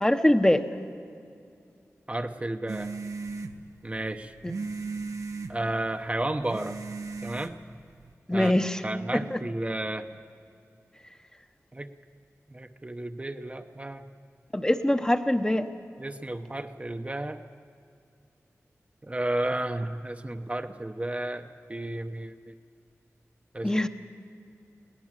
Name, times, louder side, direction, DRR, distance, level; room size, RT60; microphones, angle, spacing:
voice 1, 0.0-0.6 8.3-8.8 9.1-9.4 14.5-15.6 23.6-23.9, left 1 dB, 15° left, 7 dB, 0.9 m, -23 dB
voice 2, 2.1-2.9 3.8-4.3 5.5-6.8 7.2-7.6 8.3-8.5 8.8-10.1 11.7-11.9 12.5-14.1 16.0-17.4 19.0-22.5 23.5-23.7, right 1 dB, 25° right, 6 dB, 0.8 m, -32 dB
sound 1, 2.7-8.1, right 4 dB, 85° right, 1.0 m, -37 dB
22.0 x 17.5 x 7.5 m, 2.4 s
wide cardioid pair, 80°, 5 cm